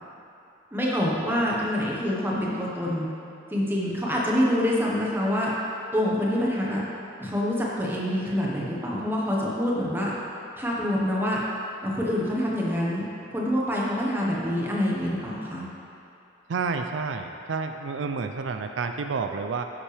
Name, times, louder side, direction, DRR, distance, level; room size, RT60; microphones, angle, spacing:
voice 1, 0.7-3.1 3.5-5.5 5.9-6.8 7.2-10.1 10.6-11.4 11.8-13.0 13.3-15.7, equal, 10° right, -5 dB, 1.2 m, -26 dB
voice 2, 16.5-19.6, right 4 dB, 80° right, 6 dB, 0.4 m, -29 dB
10.0 x 7.4 x 3.4 m, 2.8 s
head